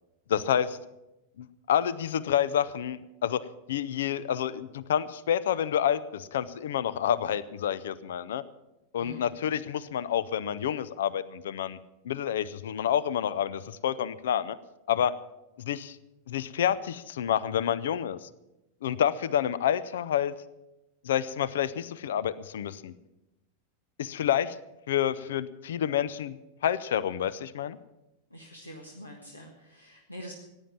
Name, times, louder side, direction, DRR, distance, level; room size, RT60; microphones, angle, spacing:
voice 1, 0.3-0.8 1.4-8.4 8.9-11.8 12.0-14.6 14.9-15.1 15.6-16.0 16.3-18.3 18.8-20.3 21.0-22.9 24.0-24.6 24.9-26.4 26.6-27.8, left 9 dB, 60° left, 18 dB, 0.6 m, -28 dB
voice 2, 9.0-9.3 28.3-30.3, equal, 85° left, 1 dB, 1.5 m, -45 dB
15.0 x 9.9 x 7.3 m, 0.96 s
figure-of-eight pair, 90°, 0 cm